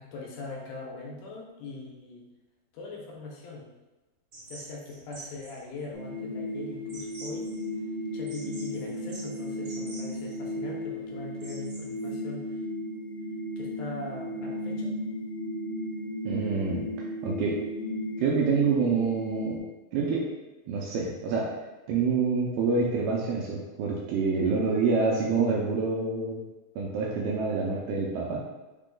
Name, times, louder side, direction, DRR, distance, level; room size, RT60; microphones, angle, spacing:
voice 1, 0.0-2.3 2.7-3.7 4.5-7.5 8.1-12.6 13.6-14.9, left 3 dB, 90° left, -2 dB, 2.7 m, -41 dB
sound 1, 4.3-12.1, right 2 dB, 50° right, 1.5 m, -48 dB
sound 2, 5.9-19.6, left 1 dB, 70° left, 1.6 m, -35 dB
voice 2, 16.3-16.8 17.2-17.6 18.2-19.6 19.9-20.3 20.7-21.5 21.9-26.4 26.8-28.4, right 4 dB, 85° right, -3 dB, 2.0 m, -27 dB
5.8 x 2.2 x 3.7 m, 1.1 s
omnidirectional pair, 4.4 m